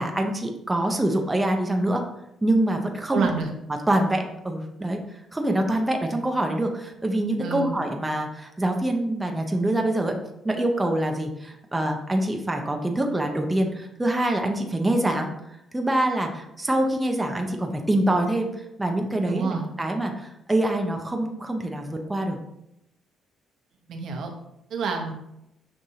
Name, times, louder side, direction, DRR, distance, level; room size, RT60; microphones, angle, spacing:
voice 1, 0.0-2.0 2.4-3.3 3.9-10.2 10.4-15.3 15.7-22.4, right 1 dB, 15° right, 3 dB, 0.5 m, -25 dB
voice 2, 3.1-3.5 7.4-7.8 19.3-19.7 23.9-24.3 24.7-25.1, right 4 dB, 70° right, 2 dB, 0.7 m, -28 dB
6.2 x 2.6 x 2.7 m, 0.83 s
cardioid pair, 90°, 0 cm